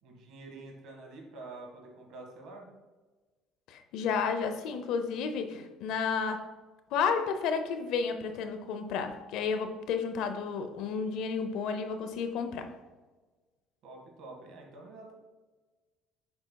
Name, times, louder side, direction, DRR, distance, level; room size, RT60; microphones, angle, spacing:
voice 1, 0.0-2.7 13.8-15.1, right 2 dB, 65° right, 0 dB, 1.7 m, -47 dB
voice 2, 3.7-6.5 6.9-12.7, left 5 dB, 70° left, 8 dB, 0.6 m, -32 dB
7.6 x 5.7 x 2.3 m, 1.3 s
cardioid pair, 150°, 0 cm